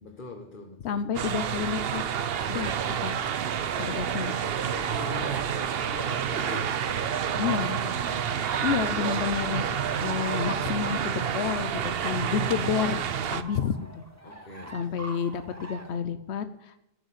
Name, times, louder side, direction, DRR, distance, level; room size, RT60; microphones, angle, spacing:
voice 1, 0.0-1.3 3.7-8.6 14.2-15.1, left 3 dB, 50° left, 2 dB, 1.6 m, -43 dB
voice 2, 0.8-2.0 2.5-3.2 3.8-4.3 7.4-7.8 8.6-14.0 14.7-16.8, left 7 dB, 90° left, 11 dB, 1.0 m, -30 dB
sound 1, 1.1-13.4, right 8 dB, 65° right, 0.9 m, -29 dB
sound 2, 1.9-16.0, right 1 dB, 15° right, 1.2 m, -45 dB
13.0 x 6.5 x 9.9 m, 0.89 s
omnidirectional pair, 1.1 m